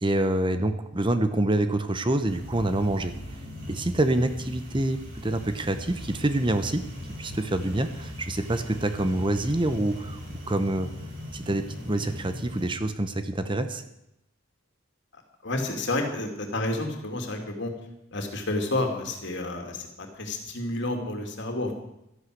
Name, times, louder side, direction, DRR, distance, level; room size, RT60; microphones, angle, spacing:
voice 1, 0.0-3.1 3.7-5.0 5.2-6.8 7.2-10.2 10.5-10.9 11.3-13.8, right 1 dB, 25° right, 9 dB, 0.9 m, -26 dB
sound 1, 2.3-12.7, left 1 dB, 65° right, 5.2 m, -39 dB
voice 2, 15.1-17.7 18.1-21.7, left 2 dB, 60° left, 4 dB, 2.7 m, -30 dB
13.0 x 11.5 x 7.9 m, 0.85 s
head